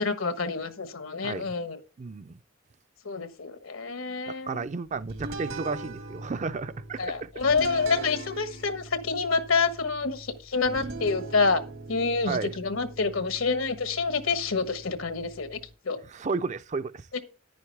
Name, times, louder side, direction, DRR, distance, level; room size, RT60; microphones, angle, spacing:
voice 1, 0.0-1.8 3.0-4.7 7.0-11.6 11.9-15.6 15.8-16.0 17.1-17.2, left 4 dB, 85° left, 1.3 m, -27 dB
voice 2, 1.2-1.5 2.0-2.4 4.3-7.3 12.3-12.5 16.1-17.1, right 4 dB, 35° right, 0.4 m, -33 dB
sound 1, 5.1-15.7, right 2 dB, 80° right, 1.7 m, -41 dB
10.5 x 9.3 x 3.4 m
head